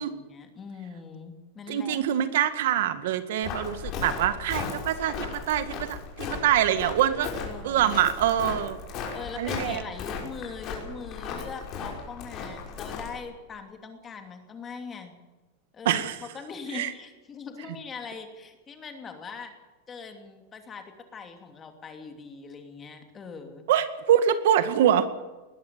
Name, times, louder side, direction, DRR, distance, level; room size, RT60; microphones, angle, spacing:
voice 1, 0.0-2.0 7.4-8.1 9.1-15.2 15.7-19.5 19.9-23.7, left 5 dB, 20° left, 6 dB, 2.9 m, -41 dB
voice 2, 1.7-7.3 7.6-8.8 9.4-9.8 15.9-16.2 16.7-16.9 23.7-25.1, right 10 dB, 70° right, 11 dB, 1.9 m, -24 dB
Walk footsteps, 3.4-13.2, left 5 dB, 35° left, 5.8 m, -36 dB
20.5 x 14.5 x 9.6 m, 1.2 s
supercardioid pair, 160°, 0 cm